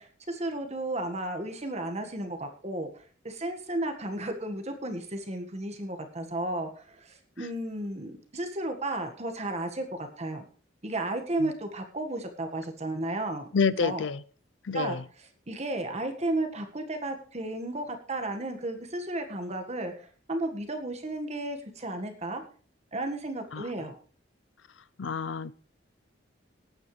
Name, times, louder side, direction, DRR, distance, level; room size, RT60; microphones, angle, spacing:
voice 1, 0.0-10.4 10.8-13.5 13.8-14.0 14.7-15.0 15.5-22.4 22.9-24.0, right 2 dB, 35° right, 1.7 m, -33 dB
voice 2, 13.5-14.2 14.6-15.0 23.5-23.7 25.0-25.5, left 5 dB, 80° left, 0.6 m, -28 dB
19.5 x 9.1 x 3.3 m
head